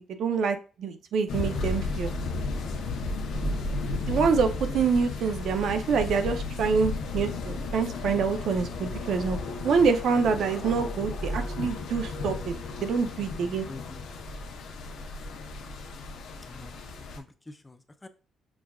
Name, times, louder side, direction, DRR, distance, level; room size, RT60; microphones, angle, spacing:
voice 1, 0.0-2.1 4.0-9.4 9.6-12.5 12.8-13.7, right 5 dB, 70° right, 8 dB, 0.5 m, -26 dB
sound 1, 1.3-17.2, left 3 dB, 85° left, 0.7 m, -34 dB
voice 2, 13.2-14.0 14.9-15.1 16.4-18.1, left 2 dB, 15° left, 9 dB, 0.4 m, -47 dB
5.9 x 2.4 x 2.3 m, 0.35 s
cardioid pair, 120°, 0 cm